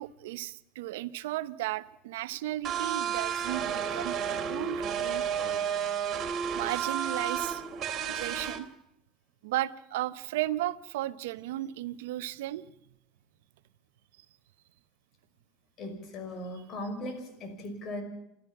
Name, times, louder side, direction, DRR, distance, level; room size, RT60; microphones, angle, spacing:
voice 1, 0.0-5.2 6.5-7.6 8.1-8.7 9.4-12.6, right 15 dB, 85° right, 15 dB, 0.8 m, -35 dB
sound 1, 2.6-8.6, right 8 dB, 40° right, 2.9 m, -32 dB
voice 2, 15.8-18.0, left 1 dB, 45° left, 8 dB, 5.7 m, -38 dB
28.5 x 12.5 x 7.2 m, 0.84 s
supercardioid pair, 105°, 0 cm